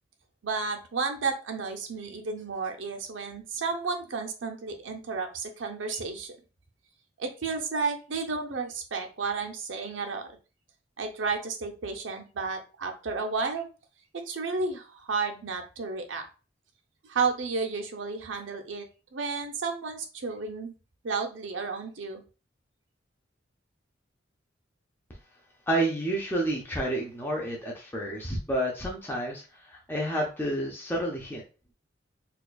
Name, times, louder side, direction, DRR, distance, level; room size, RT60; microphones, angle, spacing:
voice 1, 0.4-6.4 7.2-10.3 11.0-13.7 14.3-16.2 17.0-18.8 19.1-20.7 21.0-22.2, right 4 dB, 85° right, 3 dB, 0.6 m, -32 dB
voice 2, 25.7-31.4, right 1 dB, 10° left, -2 dB, 0.6 m, -30 dB
4.2 x 2.3 x 2.3 m, 0.34 s
head